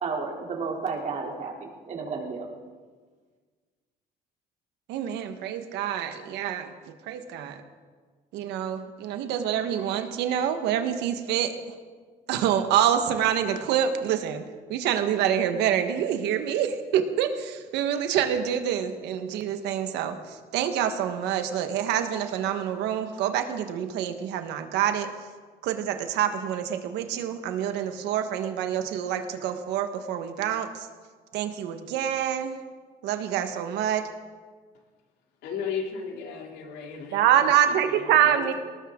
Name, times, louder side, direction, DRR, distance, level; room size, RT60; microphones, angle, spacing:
voice 1, 0.0-2.5, right 4 dB, 45° right, 0 dB, 3.2 m, -32 dB
voice 2, 4.9-7.6 8.3-11.7 12.3-25.1 25.6-30.9 31.3-32.6 33.0-34.1 37.1-38.5, right 9 dB, 90° right, 7 dB, 1.4 m, -26 dB
voice 3, 35.4-37.3 38.1-38.5, left 6 dB, 80° left, 1 dB, 3.1 m, -34 dB
19.5 x 19.0 x 3.8 m, 1.5 s
cardioid pair, 110°, 17 cm